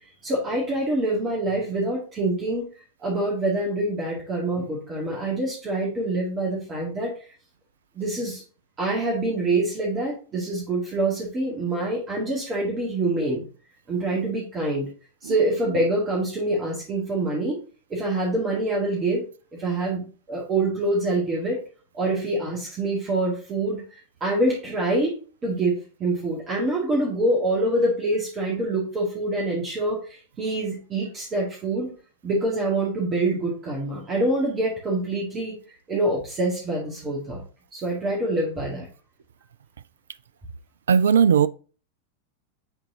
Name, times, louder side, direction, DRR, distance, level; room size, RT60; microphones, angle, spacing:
voice 1, 0.2-2.7 3.0-7.1 8.0-8.4 8.8-13.5 13.9-14.9 15.2-17.6 17.9-19.3 19.5-21.6 21.9-23.8 24.2-25.1 25.4-31.9 32.2-35.6 35.9-37.4 37.7-38.9, right 2 dB, 25° right, 1.9 m, -25 dB
voice 2, 40.9-41.5, right 7 dB, 65° right, 0.3 m, -17 dB
9.0 x 3.9 x 2.8 m
figure-of-eight pair, 90°, 0 cm